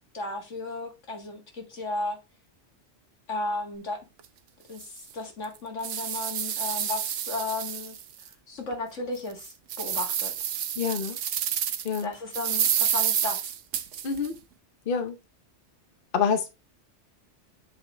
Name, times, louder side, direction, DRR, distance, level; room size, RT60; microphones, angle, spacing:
voice 1, 0.1-2.2 3.3-4.0 4.7-8.0 8.5-10.3 12.0-13.5, left 2 dB, 80° left, 2.2 m, -34 dB
sound 1, 4.2-4.3 4.8-4.9 5.4-8.3 8.7-8.8 9.3-12.0 12.3-14.3, right 9 dB, 85° right, 1.1 m, -29 dB
voice 2, 10.8-11.2 11.8-12.1 14.0-14.4 14.9-15.2 16.1-16.5, left 6 dB, 50° left, 1.0 m, -26 dB
7.8 x 5.8 x 3.3 m
omnidirectional pair, 1.3 m